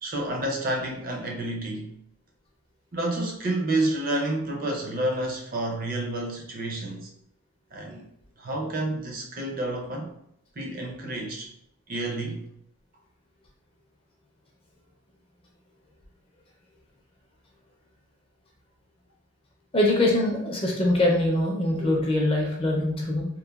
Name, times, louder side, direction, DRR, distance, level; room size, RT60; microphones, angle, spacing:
voice 1, 0.0-1.9 2.9-7.1 7.7-8.0 8.4-10.1 10.6-11.5 11.9-12.4, right 1 dB, 40° right, 1 dB, 0.5 m, -29 dB
voice 2, 19.7-23.3, left 1 dB, 25° left, -1 dB, 0.4 m, -23 dB
2.9 x 2.1 x 2.3 m, 0.72 s
head